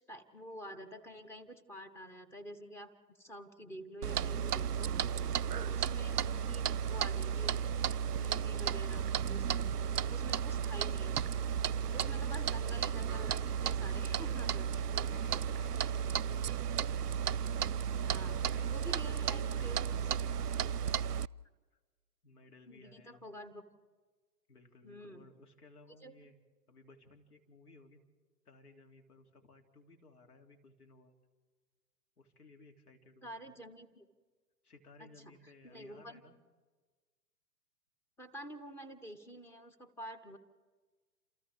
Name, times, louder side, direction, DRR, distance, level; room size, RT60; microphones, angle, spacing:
voice 1, 0.0-2.9 3.2-4.9 5.5-7.6 8.1-9.7 10.1-11.1 11.9-14.7 18.0-19.8 22.7-23.6 24.8-25.2 26.0-26.1 33.2-34.0 35.0-35.3 35.6-36.2 38.2-40.4, equal, 5° left, 8 dB, 1.0 m, -48 dB
Clock, 4.0-21.3, right 8 dB, 70° right, 0.6 m, -34 dB
voice 2, 9.7-10.5 11.8-12.4 14.7-16.7 17.9-20.7 21.7-21.8 22.2-23.3 24.5-26.4 26.7-28.0 28.4-31.1 32.2-33.6 34.6-36.4, left 2 dB, 65° left, 3 dB, 3.3 m, -58 dB
28.5 x 28.0 x 3.7 m, 1.4 s
figure-of-eight pair, 120°, 49 cm